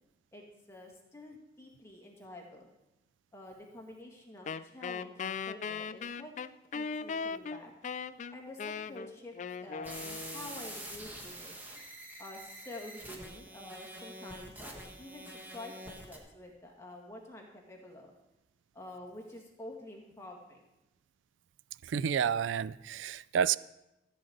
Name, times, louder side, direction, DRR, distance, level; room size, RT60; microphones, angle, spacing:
voice 1, 0.3-2.7 3.3-6.3 6.7-7.7 8.3-11.5 12.2-18.1 18.7-20.6, left 1 dB, 15° left, 1.9 m, -48 dB
Wind instrument woodwind instrument, 4.5-10.8, left 5 dB, 40° left, 0.3 m, -39 dB
sound 1, 9.8-16.2, right 1 dB, 10° right, 1.5 m, -46 dB
voice 2, 21.8-23.6, right 8 dB, 85° right, 0.3 m, -30 dB
14.0 x 5.2 x 7.9 m
head